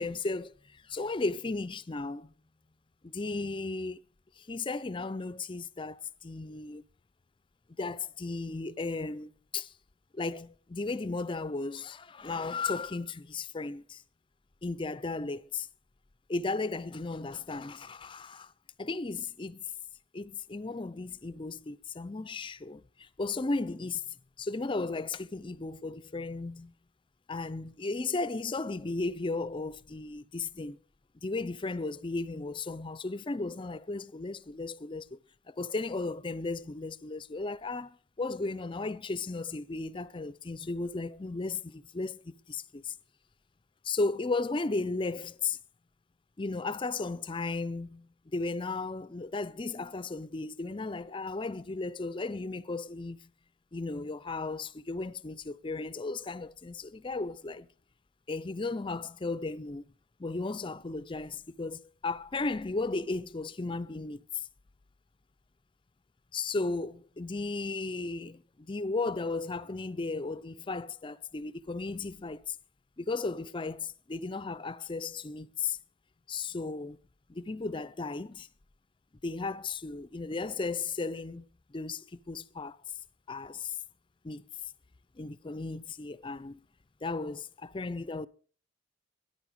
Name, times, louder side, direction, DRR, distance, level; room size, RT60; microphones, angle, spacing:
voice 1, 0.0-2.3 3.0-4.0 4.4-6.8 7.8-9.7 10.1-14.0 14.6-15.7 16.3-18.5 18.8-19.6 20.1-26.7 27.3-30.8 31.2-35.2 35.5-43.0 43.8-45.6 46.4-53.3 53.7-57.7 58.3-59.9 60.2-64.5 66.3-72.6 73.0-75.8 76.3-77.0 77.3-78.5 79.2-82.8 83.3-83.8 84.2-84.5 85.2-86.6 87.0-88.3, left 3 dB, 25° left, 0.5 m, -35 dB
13.5 x 10.5 x 5.3 m
head